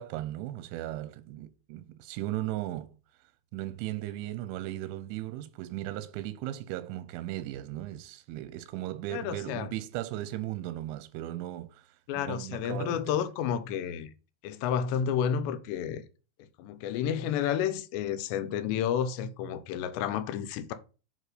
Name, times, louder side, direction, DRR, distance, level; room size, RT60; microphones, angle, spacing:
voice 1, 0.0-2.9 3.5-13.2, right 14 dB, 90° right, 2.9 m, -37 dB
voice 2, 9.1-9.7 12.1-14.1 14.4-16.0 16.6-20.7, left 8 dB, 85° left, 2.9 m, -31 dB
9.0 x 4.5 x 4.9 m
omnidirectional pair, 5.1 m